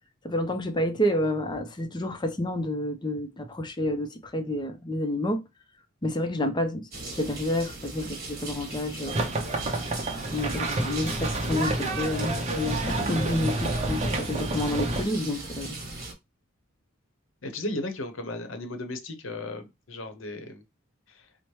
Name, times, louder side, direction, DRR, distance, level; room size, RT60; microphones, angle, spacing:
voice 1, 0.2-5.4 6.0-9.2 10.3-15.8, left 1 dB, 20° left, 0.5 m, -29 dB
sound 1, 6.9-16.1, right 2 dB, 45° right, 1.2 m, -39 dB
sound 2, 9.1-15.0, right 2 dB, 30° right, 0.7 m, -29 dB
voice 2, 17.4-20.6 21.1-21.3, left 2 dB, 70° left, 0.8 m, -35 dB
4.6 x 2.1 x 3.0 m
head